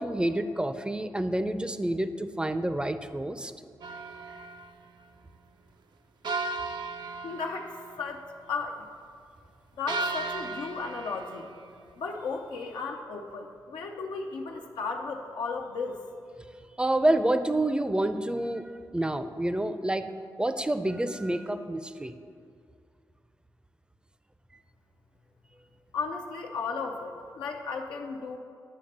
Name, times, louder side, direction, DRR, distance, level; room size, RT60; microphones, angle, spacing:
voice 1, 0.0-3.5 16.8-18.6 18.9-20.1 20.4-22.1, right 1 dB, 10° right, 10 dB, 0.4 m, -28 dB
sound 1, 3.8-4.7 6.2-8.1 9.9-11.5, right 3 dB, 70° right, 0.4 m, -35 dB
voice 2, 7.2-7.7 8.0-8.9 9.8-11.5 12.0-16.0 25.9-28.4, left 4 dB, 90° left, 1 dB, 0.5 m, -35 dB
9.6 x 3.2 x 6.5 m, 2.3 s
cardioid pair, 60°, 8 cm